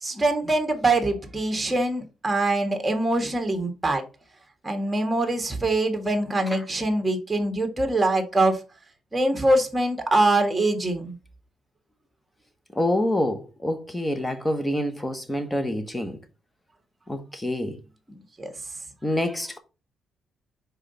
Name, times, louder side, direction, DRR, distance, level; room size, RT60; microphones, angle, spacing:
voice 1, 0.0-4.0 4.6-8.6 9.1-11.2 18.4-18.5, right 2 dB, 15° right, 1.6 m, -23 dB
voice 2, 12.8-16.2 17.1-17.8 19.0-19.6, left 1 dB, 15° left, 1.2 m, -26 dB
4.9 x 3.9 x 5.6 m
cardioid pair, 90°, 0 cm